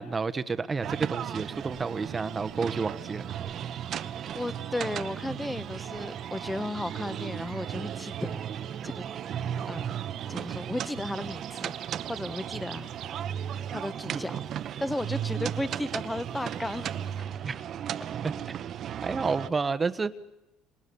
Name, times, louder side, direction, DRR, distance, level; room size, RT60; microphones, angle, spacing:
voice 1, 0.0-3.2 10.3-10.4 14.1-14.2 17.4-17.6 18.2-18.3 19.0-20.2, right 4 dB, 25° right, 12 dB, 1.3 m, -30 dB
sound 1, 0.8-19.5, right 9 dB, 50° right, 1.1 m, -35 dB
sound 2, 0.8-17.2, right 13 dB, 65° right, 1.6 m, -51 dB
voice 2, 4.3-8.4 8.8-9.0 9.7-9.9 10.3-11.8 12.0-12.9 13.7-14.4 14.8-17.3, left 1 dB, 10° left, 15 dB, 1.4 m, -34 dB
28.5 x 27.5 x 7.1 m, 0.92 s
cardioid pair, 120°, 0 cm